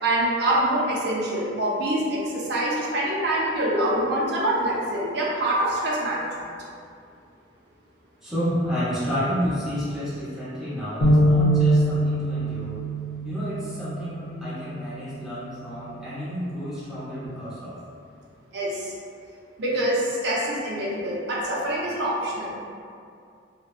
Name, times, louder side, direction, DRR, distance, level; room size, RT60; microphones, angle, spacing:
voice 1, 0.0-6.5 18.5-18.9 19.6-22.6, right 1 dB, 55° right, -5 dB, 0.5 m, -25 dB
voice 2, 8.2-12.8 13.2-17.8, equal, ahead, -13 dB, 0.7 m, -30 dB
sound 1, 11.0-17.3, right 1 dB, 90° left, 0.6 m, -25 dB
2.6 x 2.1 x 2.4 m, 2.3 s
head